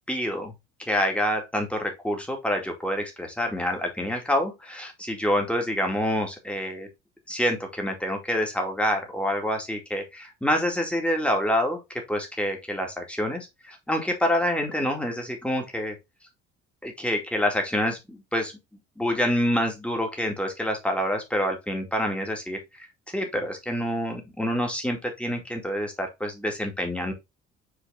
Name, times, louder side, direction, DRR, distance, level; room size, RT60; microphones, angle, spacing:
voice 1, 0.1-0.5 0.8-6.9 7.3-11.8 12.1-15.9 16.8-18.5 19.0-22.9 23.1-27.1, equal, 5° left, 2.3 m, -27 dB
6.3 x 4.6 x 3.6 m
figure-of-eight pair, 55°, 37 cm